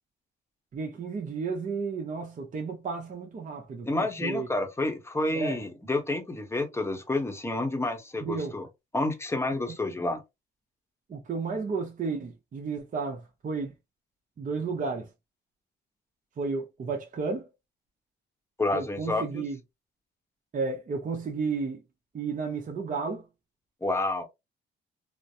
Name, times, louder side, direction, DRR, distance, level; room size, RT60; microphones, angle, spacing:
voice 1, 0.7-4.5 5.3-5.6 8.2-8.5 9.6-9.8 11.1-13.7 14.4-15.1 16.4-17.5 18.7-19.6 20.5-21.8 22.1-23.3, right 4 dB, 40° right, 0.8 m, -32 dB
voice 2, 3.8-8.7 8.9-10.2 18.6-19.4 23.8-24.2, left 2 dB, 15° left, 0.9 m, -29 dB
3.1 x 2.1 x 2.6 m
cardioid pair, 90°, 20 cm